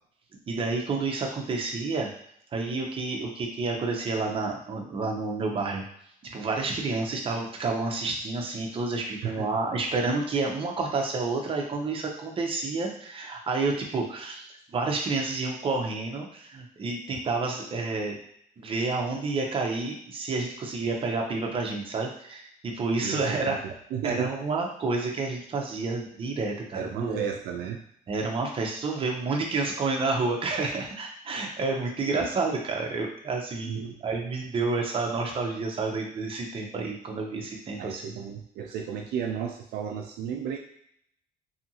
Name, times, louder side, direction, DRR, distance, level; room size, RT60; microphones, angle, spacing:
voice 1, 0.5-2.1 2.5-5.8 6.2-18.2 18.6-23.7 24.0-27.2 28.1-38.1, right 3 dB, 30° right, 0 dB, 0.6 m, -29 dB
voice 2, 23.0-24.3 26.7-27.8 33.6-34.0 37.8-40.6, right 8 dB, 75° right, 2 dB, 0.4 m, -33 dB
2.8 x 2.5 x 2.7 m, 0.69 s
cardioid pair, 110°, 17 cm